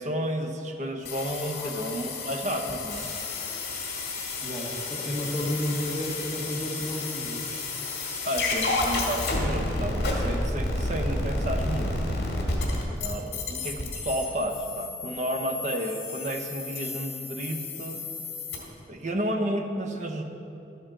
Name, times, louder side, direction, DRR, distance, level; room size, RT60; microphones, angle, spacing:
voice 1, 0.0-3.1 8.2-11.9 13.0-18.0 18.9-20.2, equal, 40° right, 4 dB, 0.8 m, -31 dB
sound 1, 1.1-18.6, left 2 dB, 60° left, 1.9 m, -31 dB
voice 2, 4.4-7.4, equal, ahead, -8 dB, 1.2 m, -32 dB
12.5 x 9.0 x 3.8 m, 2.8 s
head